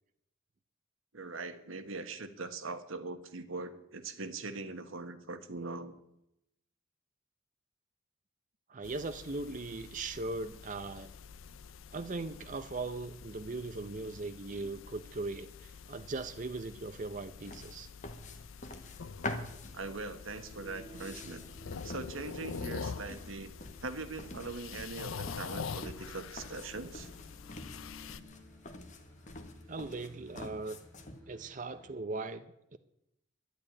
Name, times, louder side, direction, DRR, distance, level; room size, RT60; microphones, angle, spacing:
voice 1, 1.1-5.9 19.7-21.5 21.8-23.5 23.8-27.1, right 3 dB, 90° right, 10 dB, 1.4 m, -41 dB
voice 2, 8.7-11.1 11.9-17.9 29.7-30.8 31.3-32.8, right 3 dB, 40° right, 10 dB, 0.6 m, -39 dB
sound 1, 8.8-28.2, left 5 dB, 90° left, 0.6 m, -46 dB
sound 2, 17.4-31.2, left 2 dB, 40° left, 1.3 m, -46 dB
sound 3, 20.3-31.9, equal, 10° left, 6.8 m, -56 dB
11.5 x 10.5 x 9.8 m, 0.82 s
head